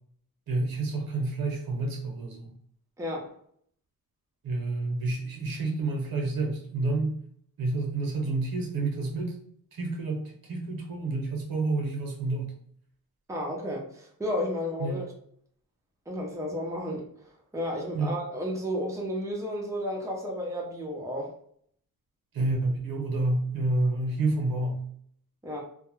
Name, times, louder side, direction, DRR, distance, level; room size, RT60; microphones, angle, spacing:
voice 1, 0.5-2.5 4.4-7.1 7.6-9.4 9.7-12.5 14.8-15.1 17.9-18.2 22.3-24.8, right 2 dB, 75° right, 1 dB, 0.9 m, -29 dB
voice 2, 3.0-3.3 13.3-15.1 16.1-17.0 17.5-21.3 25.4-25.6, equal, 10° right, -1 dB, 0.6 m, -32 dB
2.3 x 2.1 x 3.0 m, 0.63 s
cardioid pair, 95°, 35 cm